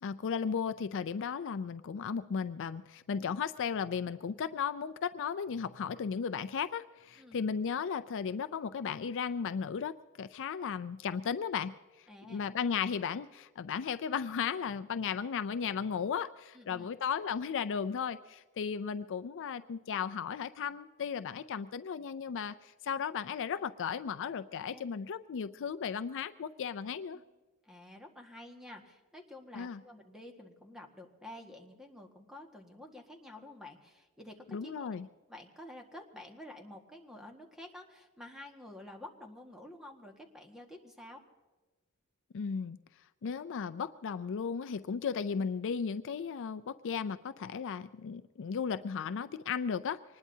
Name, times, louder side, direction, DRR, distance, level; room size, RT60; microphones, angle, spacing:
voice 1, 0.0-11.7 12.3-27.2 29.5-29.8 34.5-35.1 42.3-42.8 43.2-50.2, left 6 dB, 60° left, 12 dB, 0.4 m, -35 dB
voice 2, 12.1-12.5 16.5-17.0 24.5-24.8 27.1-27.2 27.6-34.9 35.3-41.2, left 1 dB, ahead, 2 dB, 1.6 m, -50 dB
25.0 x 20.0 x 2.8 m, 1.2 s
head